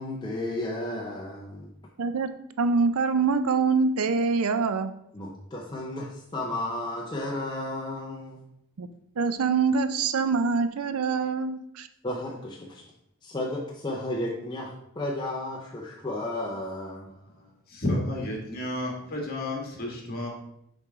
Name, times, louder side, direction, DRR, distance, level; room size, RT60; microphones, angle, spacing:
voice 1, 0.0-1.7 5.1-8.4 12.0-12.9 13.2-17.1, left 1 dB, 20° left, -2 dB, 0.6 m, -33 dB
voice 2, 2.0-2.3 2.6-4.9 8.8-8.9 9.2-11.9, right 4 dB, 90° right, 11 dB, 0.5 m, -24 dB
voice 3, 17.7-20.3, left 1 dB, 45° left, -1 dB, 1.7 m, -31 dB
6.7 x 4.5 x 3.6 m, 0.77 s
head